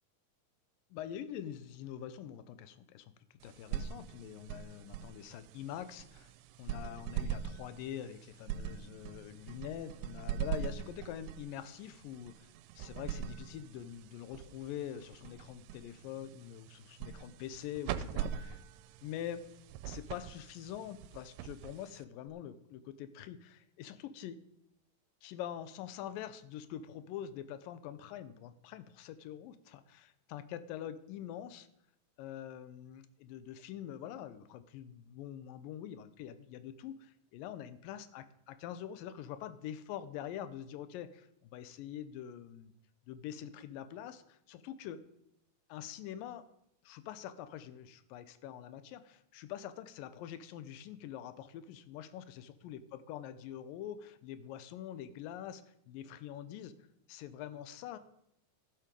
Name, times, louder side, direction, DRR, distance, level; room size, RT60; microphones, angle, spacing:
voice 1, 0.9-3.1 3.4-6.3 6.6-12.5 12.8-18.6 19.0-19.5 19.8-24.4 25.2-31.7 32.2-37.1 37.3-42.7 43.1-45.0 45.7-46.5 46.8-55.6 55.9-56.7 57.1-58.0, left 10 dB, 85° left, 12 dB, 2.4 m, -45 dB
sound 1, 3.4-22.3, right 9 dB, 85° right, 2.2 m, -43 dB
13.5 x 7.6 x 5.1 m, 0.79 s
omnidirectional pair, 3.9 m